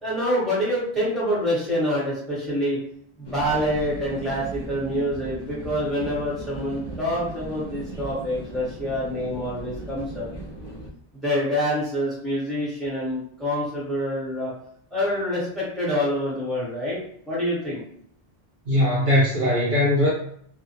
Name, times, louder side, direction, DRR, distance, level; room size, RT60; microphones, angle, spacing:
voice 1, 0.0-2.8 3.2-10.3 11.1-14.5 14.9-17.0 17.3-17.8, equal, ahead, -8 dB, 1.0 m, -26 dB
sound 1, 3.2-10.9, right 2 dB, 30° left, 0.5 m, -37 dB
voice 2, 18.7-20.1, left 1 dB, 55° right, -5 dB, 0.6 m, -20 dB
2.2 x 2.1 x 2.8 m, 0.65 s
omnidirectional pair, 1.1 m